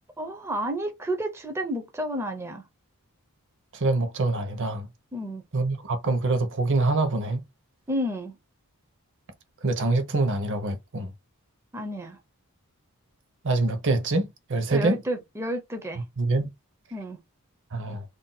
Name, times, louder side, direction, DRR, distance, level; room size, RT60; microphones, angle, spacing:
voice 1, 0.2-2.6 5.1-5.4 7.9-8.4 11.7-12.2 14.7-16.0 16.9-17.2, equal, 10° right, 0.4 m, -31 dB
voice 2, 3.7-4.9 5.5-7.4 9.6-11.1 13.4-15.0 16.2-16.5 17.7-18.0, right 2 dB, 55° right, 0.7 m, -25 dB
2.6 x 2.1 x 3.9 m
head